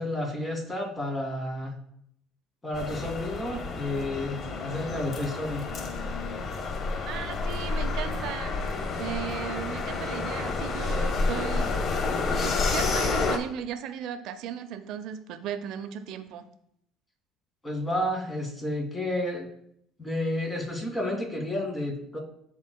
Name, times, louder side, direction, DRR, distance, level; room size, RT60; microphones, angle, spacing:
voice 1, 0.0-1.8 2.6-5.6 17.6-19.5 20.0-22.2, left 1 dB, 20° left, 0 dB, 1.9 m, -31 dB
sound 1, 2.7-13.4, left 3 dB, 45° left, 0.8 m, -29 dB
voice 2, 7.1-11.7 12.3-16.4, right 9 dB, 70° right, 9 dB, 0.6 m, -36 dB
11.5 x 3.9 x 2.2 m, 0.70 s
supercardioid pair, 95°, 0 cm